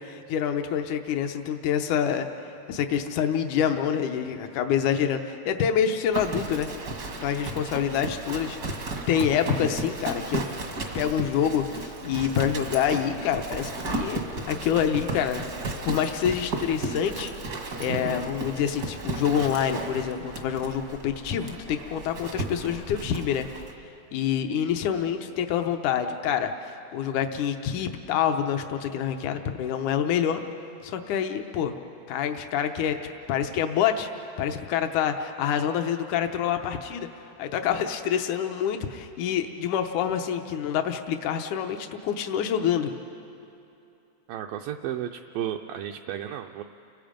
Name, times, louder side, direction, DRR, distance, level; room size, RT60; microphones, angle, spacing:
voice 1, 0.0-2.3 2.7-6.7 7.2-10.5 10.9-15.4 15.8-17.3 17.8-23.5 24.1-30.4 30.8-31.7 32.1-33.0 33.3-34.1 34.4-37.1 37.4-42.9, left 8 dB, 85° left, 6 dB, 1.7 m, -27 dB
Livestock farm animals working animals, 6.1-23.7, right 3 dB, 65° right, 0.9 m, -34 dB
voice 2, 44.3-46.6, right 10 dB, 85° right, 3 dB, 2.0 m, -33 dB
30.0 x 23.0 x 5.2 m, 2.7 s
omnidirectional pair, 4.7 m